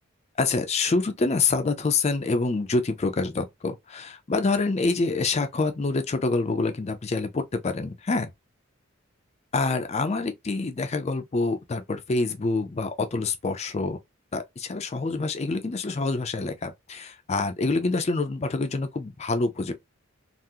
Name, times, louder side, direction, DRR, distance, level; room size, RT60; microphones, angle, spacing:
voice 1, 0.4-8.3 9.5-14.0 14.3-19.7, left 3 dB, 30° left, 0.4 m, -26 dB
3.5 x 2.0 x 2.7 m
head